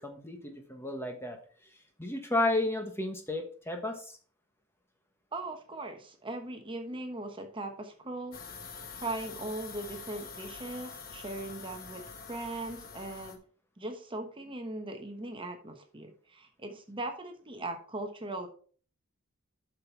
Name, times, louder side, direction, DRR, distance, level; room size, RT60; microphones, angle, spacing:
voice 1, 0.0-1.4 2.0-4.1, left 2 dB, 10° left, 4 dB, 1.1 m, -32 dB
voice 2, 5.3-8.4 8.9-13.4 13.8-18.5, right 2 dB, 25° right, 5 dB, 1.1 m, -39 dB
sound 1, 8.3-13.4, left 5 dB, 45° left, 1.2 m, -45 dB
7.6 x 5.8 x 4.5 m, 0.42 s
head